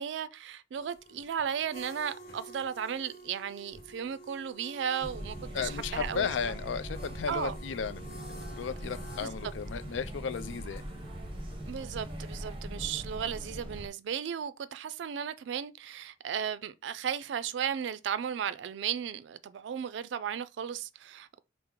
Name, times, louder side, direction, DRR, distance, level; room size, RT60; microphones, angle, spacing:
voice 1, 0.0-6.3 7.3-7.6 9.2-9.3 11.7-21.4, right 8 dB, 75° right, 0.3 m, -35 dB
sound 1, 0.7-13.2, right 1 dB, 55° left, 1.1 m, -51 dB
sound 2, 5.0-13.9, right 1 dB, 30° right, 0.6 m, -41 dB
voice 2, 5.5-10.8, left 6 dB, 85° left, 0.4 m, -35 dB
4.4 x 2.0 x 3.6 m
head